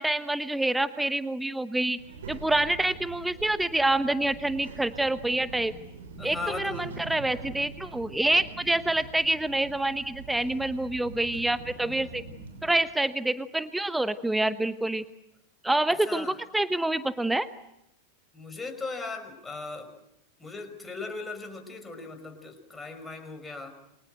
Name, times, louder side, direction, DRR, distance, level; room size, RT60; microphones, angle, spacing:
voice 1, 0.0-2.0 2.3-5.7 6.2-12.2 12.6-15.0 15.6-17.5, right 2 dB, 5° right, 13 dB, 1.0 m, -27 dB
Child speech kid speaking, 2.0-12.7, right 3 dB, 65° right, 6.1 m, -44 dB
voice 2, 6.2-6.9 15.9-16.3 18.3-19.9 20.4-23.7, left 3 dB, 10° left, 5 dB, 5.6 m, -38 dB
28.5 x 24.5 x 7.9 m, 0.82 s
figure-of-eight pair, 90°, 0 cm